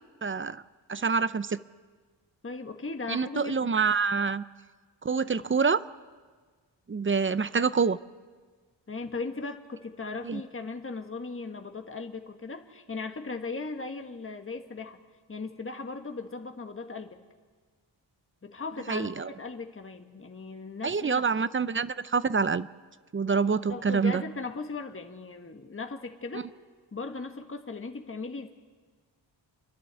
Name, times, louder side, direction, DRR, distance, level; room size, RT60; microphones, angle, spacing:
voice 1, 0.2-0.6 0.9-1.6 3.1-4.4 5.0-5.8 6.9-8.0 10.2-10.4 18.9-19.3 20.8-22.7 23.1-24.2 26.3-26.4, right 5 dB, 25° right, 16 dB, 0.5 m, -26 dB
voice 2, 2.4-3.5 8.9-15.0 15.3-17.2 18.4-21.5 23.7-26.5 26.9-28.5, left 3 dB, 30° left, 5 dB, 1.5 m, -38 dB
28.5 x 11.0 x 8.2 m, 1.5 s
cardioid pair, 70°, 45 cm